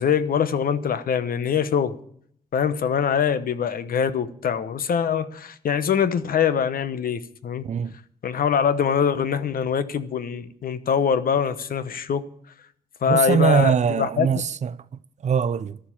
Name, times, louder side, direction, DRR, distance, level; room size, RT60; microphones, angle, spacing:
voice 1, 0.0-2.0 2.5-7.6 8.2-12.2 13.0-14.3, left 7 dB, 65° left, 1.0 m, -23 dB
voice 2, 7.6-8.0 13.1-14.8 15.2-15.8, right 7 dB, 45° right, 0.6 m, -22 dB
12.5 x 7.4 x 9.9 m
cardioid pair, 105°, 16 cm